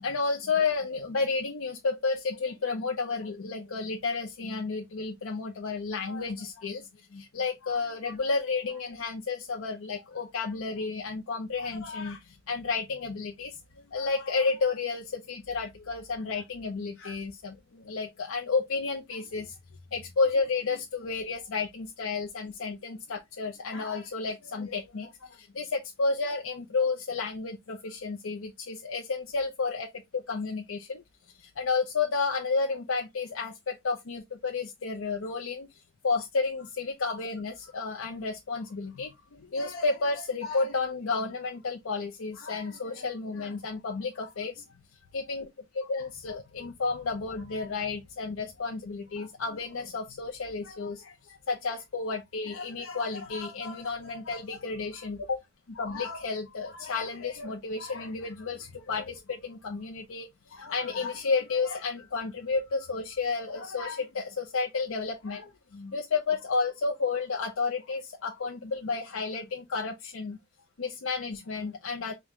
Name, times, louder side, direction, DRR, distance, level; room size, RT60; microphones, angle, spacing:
voice 1, 0.0-19.6 19.9-44.7 45.1-45.4 45.9-55.4 55.8-70.4 70.8-72.1, left 4 dB, 75° left, 0.6 m, -32 dB
5.2 x 2.2 x 3.1 m
head